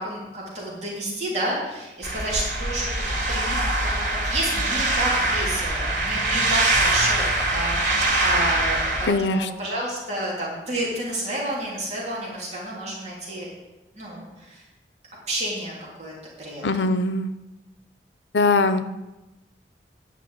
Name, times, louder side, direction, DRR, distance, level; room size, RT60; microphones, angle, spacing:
voice 1, 0.0-2.9 3.3-13.5 13.9-14.6 15.3-15.7 16.0-16.1 16.4-16.8, right 1 dB, 40° right, -5 dB, 3.1 m, -30 dB
sound 1, 2.0-9.1, right 2 dB, 85° right, 2.4 m, -23 dB
voice 2, 9.1-9.5 16.6-17.3 18.3-19.0, left 3 dB, 90° left, 11 dB, 0.7 m, -21 dB
10.0 x 6.0 x 7.9 m, 1.0 s
head